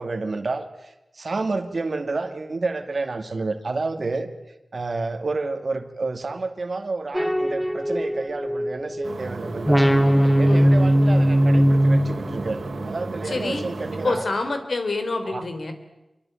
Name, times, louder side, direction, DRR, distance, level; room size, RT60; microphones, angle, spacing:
voice 1, 0.0-4.3 4.7-9.9 10.2-12.6 12.9-14.3 15.2-15.4, right 3 dB, 65° right, 8 dB, 2.3 m, -30 dB
sound 1, 7.1-9.2 9.7-12.9, equal, 5° left, 2.1 m, -19 dB
sound 2, 9.0-14.1, right 3 dB, 90° right, 3.4 m, -33 dB
voice 2, 13.2-13.6 13.9-15.7, left 3 dB, 75° left, 7 dB, 3.7 m, -27 dB
26.5 x 23.5 x 9.0 m, 0.99 s
wide cardioid pair, 65°, 0 cm